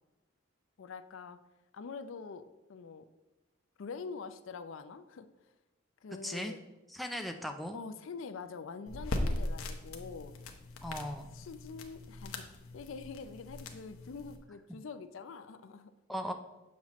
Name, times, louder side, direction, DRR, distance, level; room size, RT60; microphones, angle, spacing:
voice 1, 0.8-1.4 1.7-2.4 2.7-3.1 3.8-5.3 6.0-6.6 7.7-10.3 11.3-12.4 12.7-15.9, left 5 dB, 70° left, 10 dB, 0.4 m, -45 dB
voice 2, 6.2-6.5 6.9-7.8 10.8-11.3 16.1-16.3, equal, ahead, 4 dB, 0.3 m, -37 dB
sound 1, 8.9-14.4, left 1 dB, 90° left, 0.8 m, -39 dB
7.4 x 5.7 x 3.0 m, 1.1 s
head